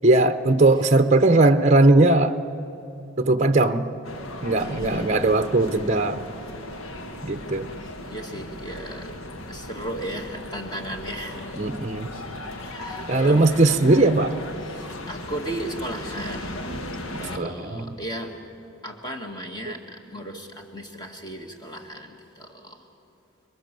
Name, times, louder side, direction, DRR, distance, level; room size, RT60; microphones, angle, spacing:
voice 1, 0.0-2.4 3.2-3.9 4.4-6.2 7.2-7.7 11.6-12.1 13.1-14.4 17.1-17.9, right 2 dB, 35° right, 9 dB, 0.7 m, -19 dB
sound 1, 4.0-17.4, left 1 dB, 85° left, 1.5 m, -37 dB
voice 2, 4.5-5.3 7.8-9.2 9.5-11.6 12.6-13.5 14.6-16.7 17.1-18.4 18.8-22.9, right 1 dB, 20° left, 3 dB, 2.1 m, -36 dB
26.0 x 22.5 x 7.6 m, 2.8 s
head